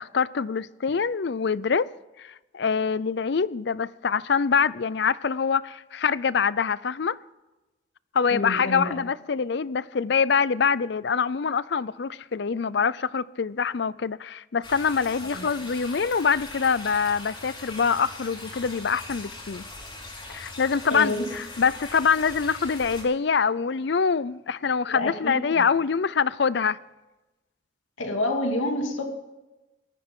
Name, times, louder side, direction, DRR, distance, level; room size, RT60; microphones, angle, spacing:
voice 1, 0.0-1.9 2.2-7.2 8.1-19.6 20.3-26.8, left 6 dB, 60° left, 0.5 m, -25 dB
voice 2, 8.3-9.0 15.3-15.5 20.9-21.3 24.9-25.7 28.0-29.1, left 1 dB, 85° left, 2.7 m, -28 dB
sound 1, 14.6-23.0, left 2 dB, 25° left, 3.9 m, -41 dB
19.0 x 14.0 x 3.8 m
head